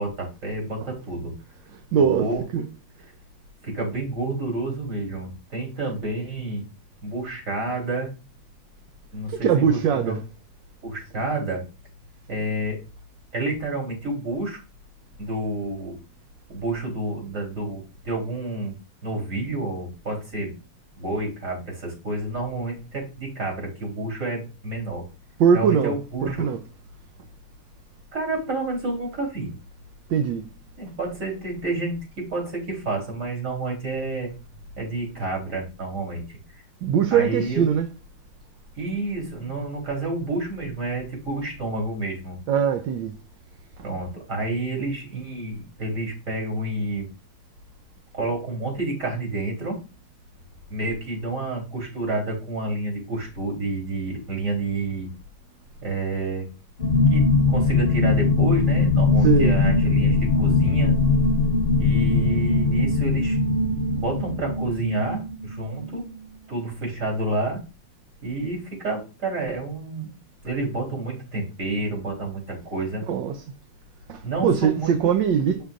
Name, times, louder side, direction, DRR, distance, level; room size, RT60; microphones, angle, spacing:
voice 1, 0.0-1.4 1.9-2.4 3.6-6.6 7.0-8.1 9.1-10.2 10.8-11.6 12.3-12.8 13.3-14.6 15.2-16.0 16.5-18.8 19.0-20.5 21.0-25.0 25.5-26.5 28.1-29.5 30.8-34.3 34.8-36.2 37.1-37.7 38.7-42.4 43.8-47.1 48.1-49.8 50.7-55.1 55.8-56.5 57.1-61.0 61.8-63.4 64.0-66.0 66.5-67.6 68.2-70.1 70.4-73.0 74.2-74.9, right 2 dB, 40° right, 3.8 m, -29 dB
voice 2, 1.9-2.3 2.5-2.6 9.3-10.2 25.4-25.9 26.2-26.6 30.1-30.4 36.8-37.9 42.5-43.1 59.2-59.5 73.1-73.4 74.1-75.6, right 7 dB, 70° right, 1.3 m, -21 dB
sound 1, 56.8-66.3, left 3 dB, 45° left, 0.7 m, -21 dB
9.1 x 6.6 x 2.5 m
omnidirectional pair, 2.3 m